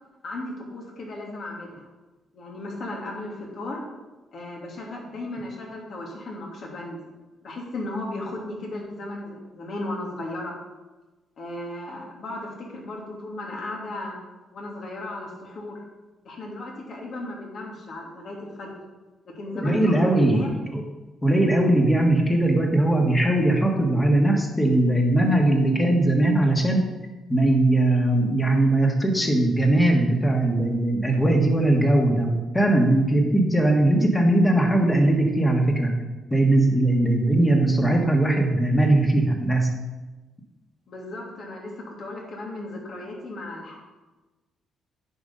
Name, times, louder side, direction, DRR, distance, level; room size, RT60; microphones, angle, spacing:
voice 1, 0.2-1.9 2.3-3.8 4.3-7.0 7.4-10.5 11.4-14.2 14.5-15.8 16.2-18.8 19.2-20.6 40.9-43.8, left 2 dB, 55° left, -1 dB, 2.7 m, -35 dB
voice 2, 19.6-20.4 20.7-20.8 21.2-26.9 27.3-35.9 36.3-39.7, right 1 dB, 15° left, 2 dB, 1.8 m, -20 dB
9.6 x 5.3 x 5.3 m, 1.2 s
cardioid pair, 90°, 0 cm